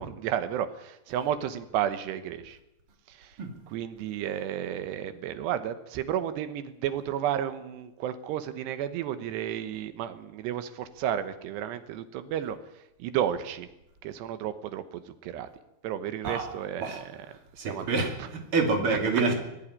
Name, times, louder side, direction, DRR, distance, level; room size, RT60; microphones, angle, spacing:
voice 1, 0.0-2.6 3.7-12.6 13.0-13.7 14.0-14.8 15.2-15.5 15.8-16.9 17.6-17.8, right 10 dB, 90° right, 11 dB, 3.3 m, -32 dB
voice 2, 17.6-19.3, right 4 dB, 35° right, 3 dB, 3.2 m, -27 dB
19.5 x 14.0 x 9.9 m, 0.92 s
omnidirectional pair, 4.7 m